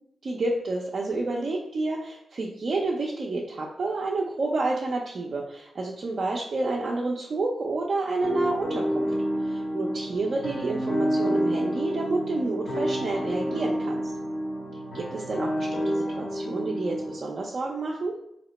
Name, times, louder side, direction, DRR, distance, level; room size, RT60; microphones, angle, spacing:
voice 1, 0.2-9.1 9.4-14.0 14.9-18.1, right 2 dB, 60° right, -3 dB, 0.5 m, -29 dB
sound 1, 8.2-17.2, equal, 70° left, 0.9 m, -29 dB
2.8 x 2.1 x 3.9 m, 0.76 s
supercardioid pair, 45°, 0 cm